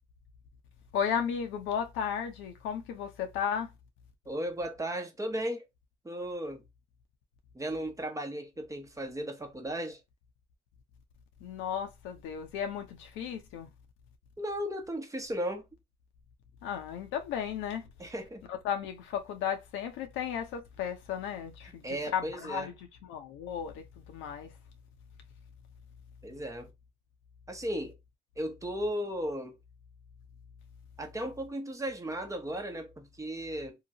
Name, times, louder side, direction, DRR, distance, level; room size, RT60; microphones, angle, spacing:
voice 1, 0.9-3.7 11.4-13.7 16.6-17.9 18.5-24.5, left 8 dB, 70° left, 0.8 m, -34 dB
voice 2, 4.3-5.7 6.0-6.6 7.5-10.0 14.4-15.6 18.0-18.4 21.8-22.7 26.2-26.7 27.5-28.0 28.4-29.5 31.0-33.8, equal, 15° right, 0.9 m, -35 dB
2.9 x 2.2 x 2.9 m
hypercardioid pair, 65°, 21 cm